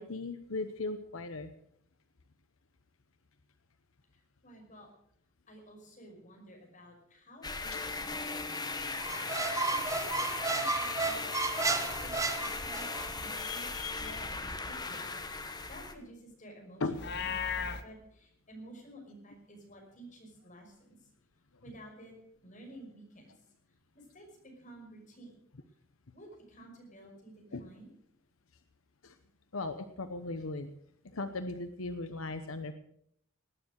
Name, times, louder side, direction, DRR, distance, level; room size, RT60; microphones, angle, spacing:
voice 1, 0.0-1.5 7.7-7.8 13.3-14.2 16.8-16.9 27.5-27.6 29.0-29.2 29.5-30.7 31.0-32.7, left 3 dB, 85° left, 9 dB, 0.9 m, -38 dB
voice 2, 4.1-4.9 5.5-13.7 14.0-17.6 17.8-21.1 21.6-22.2 22.4-23.5 23.9-25.4 26.1-27.9, right 1 dB, 40° left, 1 dB, 5.7 m, -53 dB
sound 1, 7.4-15.9, left 3 dB, 20° left, 1.3 m, -38 dB
Squeak, 9.0-13.1, right 3 dB, 15° right, 1.0 m, -33 dB
Livestock farm animals working animals, 16.9-17.8, left 6 dB, 55° left, 1.2 m, -34 dB
19.0 x 9.8 x 6.4 m, 0.70 s
head